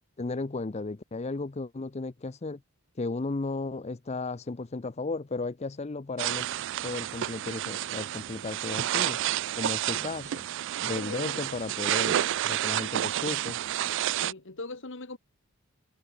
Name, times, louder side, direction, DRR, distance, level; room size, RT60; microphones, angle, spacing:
voice 1, 0.2-2.6 3.0-6.5 6.8-9.2 9.5-10.4 10.8-12.2 12.4-13.6, left 3 dB, 30° left, 0.5 m, -34 dB
sound 1, 6.2-14.3, right 12 dB, 55° right, 0.3 m, -30 dB
voice 2, 10.9-11.4 12.1-12.3 14.1-15.2, left 2 dB, 55° left, 1.8 m, -41 dB
head